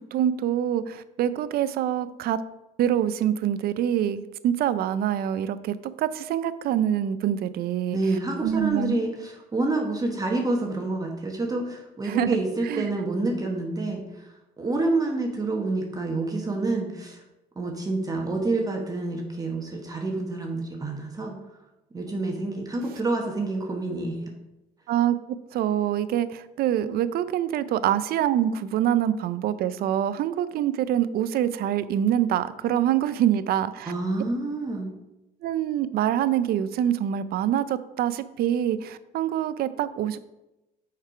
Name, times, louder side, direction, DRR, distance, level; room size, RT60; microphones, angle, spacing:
voice 1, 0.1-2.4 2.8-8.0 8.4-8.9 12.1-12.4 12.6-12.9 24.9-25.2 25.5-33.9 35.4-40.2, right 10 dB, 65° right, 14 dB, 0.5 m, -25 dB
voice 2, 7.9-17.2 17.6-21.3 21.9-24.2 33.9-34.9, right 2 dB, 20° right, 1 dB, 1.2 m, -28 dB
6.5 x 4.8 x 4.8 m, 0.97 s
cardioid pair, 110°, 17 cm